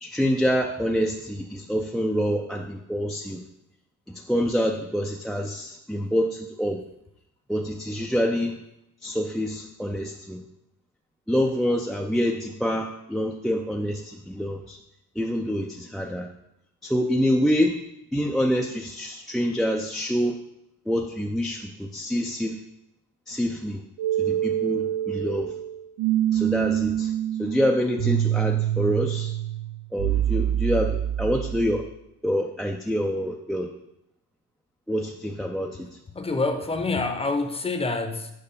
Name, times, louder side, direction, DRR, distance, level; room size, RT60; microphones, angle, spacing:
voice 1, 0.0-3.4 4.1-6.8 7.5-8.6 9.0-10.4 11.3-14.8 15.2-16.3 16.8-17.8 18.1-20.4 20.9-22.6 23.3-23.8 24.2-25.5 26.3-27.1 27.4-29.3 29.9-31.8 32.2-33.7 34.9-35.9, equal, ahead, 1 dB, 0.5 m, -26 dB
sound 1, 24.0-31.9, right 11 dB, 80° right, 0.6 m, -26 dB
voice 2, 36.1-38.3, left 3 dB, 15° left, 7 dB, 0.8 m, -26 dB
6.7 x 4.7 x 5.4 m, 0.83 s
cardioid pair, 110°, 35 cm